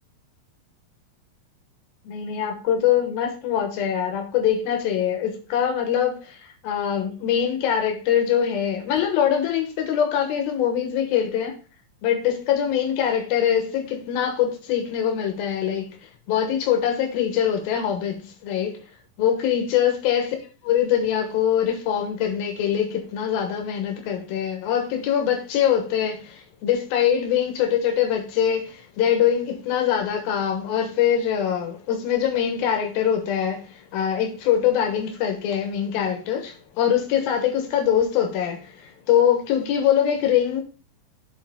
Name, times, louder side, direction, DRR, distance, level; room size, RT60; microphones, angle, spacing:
voice 1, 2.0-11.6 12.0-16.0 16.3-18.8 19.2-20.4 20.6-40.6, left 9 dB, 80° left, 3.0 m, -23 dB
7.1 x 4.4 x 5.0 m
omnidirectional pair, 4.2 m